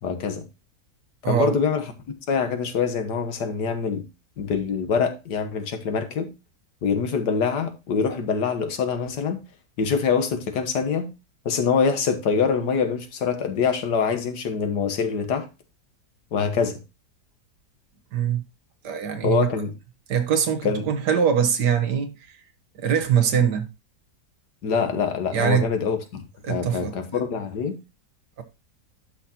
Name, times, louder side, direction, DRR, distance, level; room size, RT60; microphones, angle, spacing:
voice 1, 0.0-0.4 1.3-1.8 2.3-4.0 4.4-6.3 6.8-9.4 9.8-11.1 11.4-15.5 16.3-16.8 19.2-19.7 20.6-20.8 24.6-26.2 26.5-27.8, left 6 dB, 80° left, 1.8 m, -24 dB
voice 2, 1.2-1.5 18.1-18.4 18.8-19.5 20.1-22.2 22.7-23.7 25.3-25.7 26.4-27.2 28.4-28.5, right 8 dB, 80° right, 1.8 m, -23 dB
11.5 x 6.0 x 2.8 m
omnidirectional pair, 1.8 m